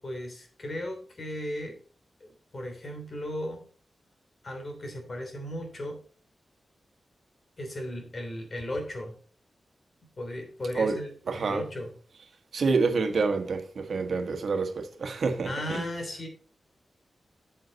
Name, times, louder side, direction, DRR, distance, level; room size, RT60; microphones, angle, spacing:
voice 1, 0.0-1.8 2.2-3.7 4.4-6.0 7.6-9.2 10.2-11.9 15.4-16.3, left 1 dB, 50° left, 3.1 m, -36 dB
voice 2, 11.3-11.6 12.5-15.8, right 4 dB, 75° right, 1.3 m, -27 dB
8.1 x 8.0 x 4.0 m
wide cardioid pair, 80°, 0 cm